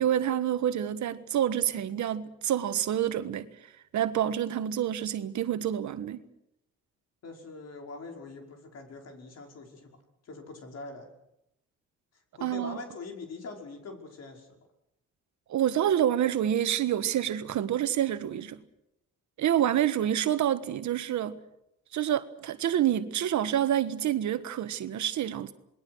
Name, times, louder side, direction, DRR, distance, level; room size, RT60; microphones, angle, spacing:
voice 1, 0.0-3.5 3.9-6.2 12.4-12.8 15.5-18.6 19.4-21.4 21.9-25.5, right 10 dB, 70° right, 1.5 m, -27 dB
voice 2, 7.2-10.0 10.2-11.1 12.1-14.6, left 3 dB, 55° left, 5.6 m, -43 dB
27.5 x 20.5 x 6.4 m
cardioid pair, 90°, 30 cm